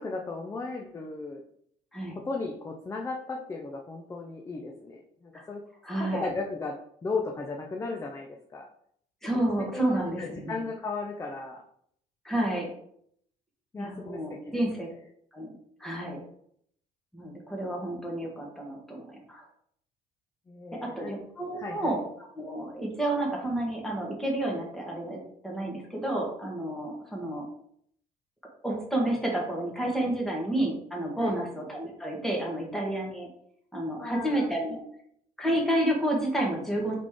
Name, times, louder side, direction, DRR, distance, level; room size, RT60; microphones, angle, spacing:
voice 1, 0.0-1.4 2.2-5.6 5.9-8.7 9.3-11.6 13.7-14.6 20.5-21.1 21.6-22.0 31.2-31.4 34.0-34.6, left 3 dB, 20° left, 1 dB, 0.5 m, -36 dB
voice 2, 5.8-6.3 9.2-10.6 12.2-12.7 13.8-14.9 15.3-15.5 15.8-16.2 17.1-19.4 20.8-27.4 28.6-33.3 33.7-34.8 35.4-36.9, right 1 dB, ahead, -1 dB, 1.3 m, -30 dB
3.9 x 3.2 x 3.6 m, 0.67 s
cardioid pair, 115°, 16 cm